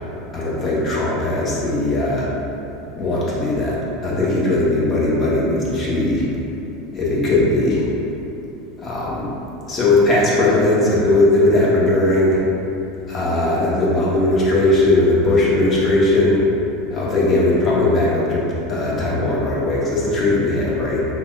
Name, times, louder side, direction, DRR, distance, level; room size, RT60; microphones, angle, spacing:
voice 1, 0.3-2.3 3.0-6.3 6.9-7.9 8.8-9.3 9.7-12.4 13.1-16.4 16.9-21.1, left 2 dB, 35° left, -6 dB, 0.8 m, -18 dB
3.6 x 2.2 x 2.3 m, 2.9 s
hypercardioid pair, 80°, 0 cm